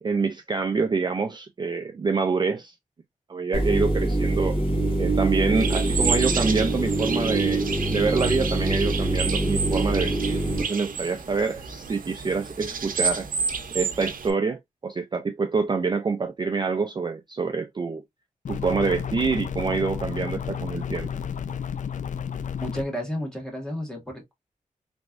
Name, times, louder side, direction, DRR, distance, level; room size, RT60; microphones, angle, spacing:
voice 1, 0.0-2.7 3.3-4.6 5.0-7.6 7.9-13.3 13.7-18.0 18.5-21.1, right 4 dB, 30° right, 0.4 m, -26 dB
sound 1, 3.5-10.6, right 2 dB, 40° left, 1.3 m, -24 dB
sound 2, 5.5-14.3, right 5 dB, 85° right, 0.7 m, -30 dB
sound 3, 18.5-22.8, left 7 dB, 65° left, 0.4 m, -31 dB
voice 2, 22.6-24.3, equal, 5° left, 1.3 m, -32 dB
3.4 x 3.0 x 2.4 m
wide cardioid pair, 130°, 14 cm